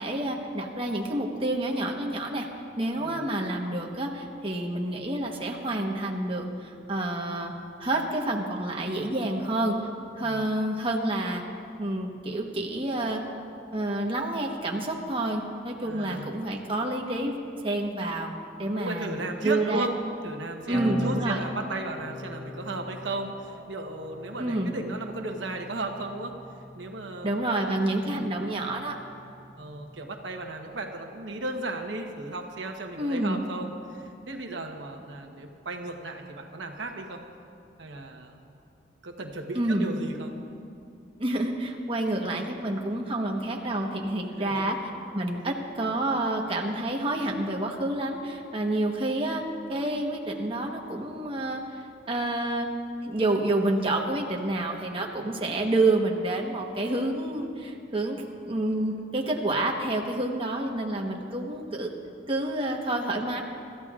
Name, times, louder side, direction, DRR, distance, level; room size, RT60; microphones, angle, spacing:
voice 1, 0.0-2.5 2.8-7.5 7.8-9.7 10.2-11.4 11.8-13.2 13.7-17.4 17.6-18.3 18.6-19.1 19.4-20.1 20.7-21.4 24.4-24.7 27.2-28.9 33.0-33.4 39.5-39.9 41.2-44.8 45.1-49.4 49.7-51.6 52.1-52.7 53.0-61.9 62.3-63.4, right 1 dB, 30° right, 0 dB, 1.1 m, -28 dB
voice 2, 15.8-16.3 18.7-19.9 20.2-26.3 26.7-28.2 29.6-37.2 37.8-38.4 39.0-40.3 44.4-44.7, right 2 dB, 85° right, 3 dB, 1.1 m, -35 dB
sound 1, 20.7-27.6 28.6-30.5, equal, ahead, 1.8 m, -40 dB
25.0 x 14.0 x 2.5 m, 2.5 s
head